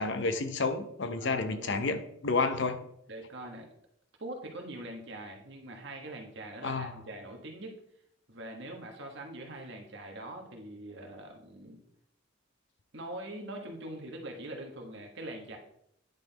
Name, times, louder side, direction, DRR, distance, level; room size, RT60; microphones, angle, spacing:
voice 1, 0.0-2.8 6.6-6.9, left 3 dB, 65° left, 9 dB, 0.7 m, -30 dB
voice 2, 1.1-1.9 3.1-3.7 4.2-7.8 8.3-11.8 12.9-15.6, right 1 dB, 60° right, 2 dB, 1.4 m, -43 dB
9.7 x 4.1 x 4.1 m, 0.72 s
head